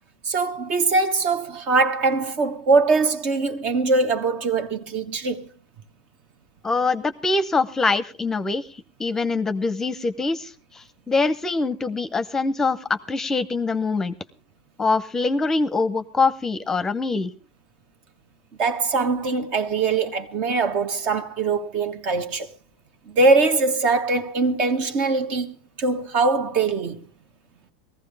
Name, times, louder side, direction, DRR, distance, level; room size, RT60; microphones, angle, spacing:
voice 1, 0.2-5.5 18.6-22.5 23.1-27.0, right 3 dB, 50° right, 1.3 m, -22 dB
voice 2, 6.6-8.6 9.0-14.1 14.8-17.3, left 3 dB, 15° left, 0.7 m, -24 dB
18.0 x 15.0 x 3.4 m
hypercardioid pair, 105°, 3 cm